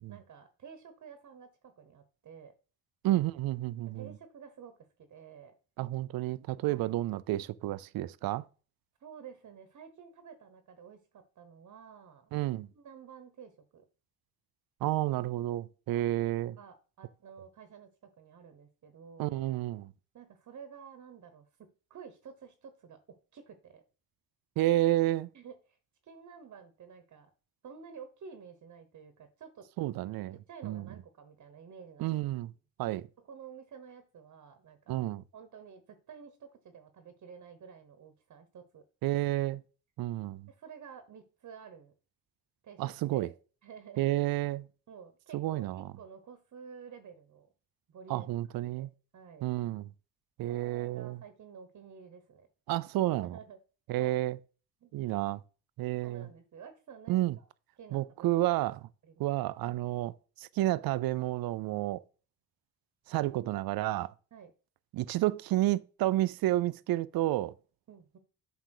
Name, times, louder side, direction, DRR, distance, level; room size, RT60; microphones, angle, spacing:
voice 1, 0.1-2.5 3.9-4.7 5.0-5.5 6.7-6.9 9.0-12.3 12.7-13.9 15.9-16.2 16.6-19.3 20.1-23.0 23.3-23.8 25.3-25.8 26.0-27.3 27.6-29.7 30.5-32.2 33.2-35.0 35.3-38.8 40.5-41.9 42.6-43.3 43.6-44.1 44.9-47.5 47.9-48.3 48.6-48.9 49.1-49.5 50.5-52.5 53.2-53.6 54.0-54.2 54.8-54.9 56.0-57.5 57.8-58.4 59.0-59.3 64.3-64.5 67.9-68.2, right 6 dB, 50° right, 1.1 m, -51 dB
voice 2, 3.0-4.1 5.8-8.4 12.3-12.7 14.8-16.6 19.2-19.9 24.6-25.3 29.8-30.4 30.6-30.9 32.0-32.5 32.8-33.1 34.9-35.2 39.0-39.6 40.0-40.5 42.8-43.3 44.0-44.7 45.3-45.9 48.1-48.9 49.4-49.9 50.4-51.2 52.7-53.4 53.9-54.4 54.9-55.4 55.8-56.3 57.1-57.4 57.9-58.8 59.2-60.1 60.4-62.0 63.1-64.1 64.9-67.5, right 15 dB, 75° right, 0.5 m, -30 dB
7.8 x 3.4 x 6.4 m
cardioid pair, 105°, 36 cm